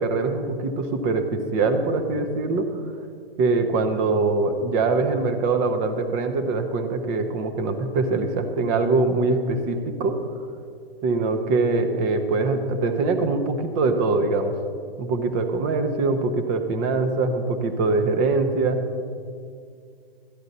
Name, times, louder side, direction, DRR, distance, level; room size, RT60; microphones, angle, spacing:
voice 1, 0.0-2.7 3.4-10.1 11.0-14.5 15.0-18.8, right 3 dB, 25° right, 7 dB, 0.8 m, -23 dB
13.0 x 9.4 x 4.0 m, 2.2 s
hypercardioid pair, 135°, 30 cm